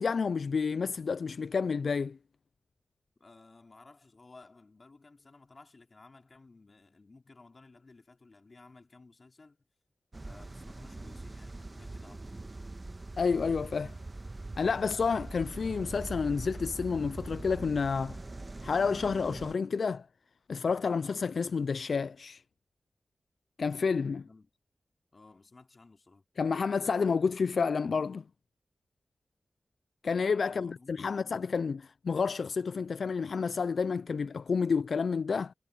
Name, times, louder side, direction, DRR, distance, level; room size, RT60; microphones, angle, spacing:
voice 1, 0.0-2.2 13.2-13.9 14.6-18.2 18.6-20.1 20.5-22.4 23.6-24.2 26.4-28.2 30.0-35.5, left 5 dB, 75° left, 0.3 m, -30 dB
voice 2, 3.2-9.6 10.2-12.2 24.1-24.5 25.1-26.3 30.5-31.4, left 3 dB, 50° left, 3.5 m, -56 dB
sound 1, 10.1-19.5, right 2 dB, 35° right, 1.3 m, -42 dB
cardioid pair, 50°, 0 cm